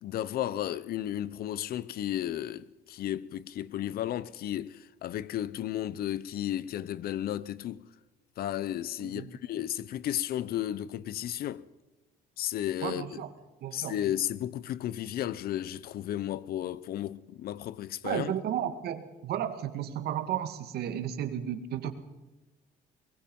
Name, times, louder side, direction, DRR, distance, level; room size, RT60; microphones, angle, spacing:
voice 1, 0.0-7.9 8.4-11.6 12.4-13.1 13.7-18.3, left 12 dB, 65° left, 0.9 m, -33 dB
voice 2, 9.0-9.3 12.8-13.3 13.6-14.0 18.0-21.9, right 10 dB, 70° right, 2.1 m, -33 dB
23.5 x 21.0 x 5.5 m
cardioid pair, 110°, 17 cm